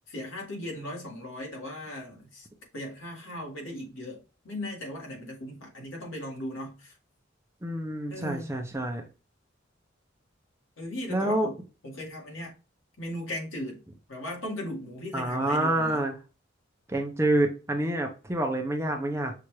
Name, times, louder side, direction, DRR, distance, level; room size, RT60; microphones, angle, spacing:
voice 1, 0.1-2.5 2.7-7.0 8.1-8.5 10.8-11.5 11.8-12.5 13.0-13.8 14.1-16.1, left 1 dB, 80° left, 1.8 m, -38 dB
voice 2, 7.6-9.0 11.1-11.5 15.1-16.2 16.9-19.3, right 1 dB, 15° right, 0.6 m, -27 dB
5.7 x 2.5 x 3.1 m
head